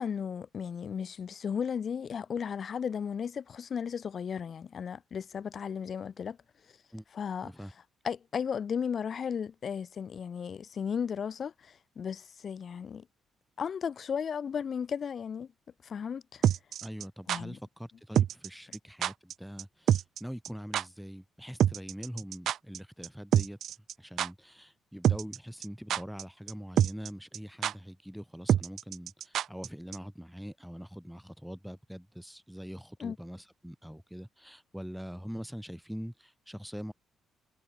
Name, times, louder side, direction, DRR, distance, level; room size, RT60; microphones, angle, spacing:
voice 1, 0.0-6.4 7.1-7.5 8.0-13.0 13.6-15.5 15.8-16.4 17.3-17.6 33.0-33.2, left 7 dB, 50° left, 4.7 m, -35 dB
sound 1, 16.4-17.4 18.2-18.5 18.7-18.8 19.0-19.3 19.6-19.7 19.9-20.2 20.4-20.5 20.7-20.8 21.6-22.8 23.0-23.1 23.3-23.9 24.2-24.3 25.0-25.4 25.6-26.2 26.5-26.6 26.8-27.1 27.3-27.4 27.6-27.7 28.5-29.7 29.9-30.0, right 10 dB, 70° right, 0.9 m, -26 dB
voice 2, 16.8-23.6 24.0-36.9, equal, ahead, 4.3 m, -43 dB
cardioid pair, 90°, 0 cm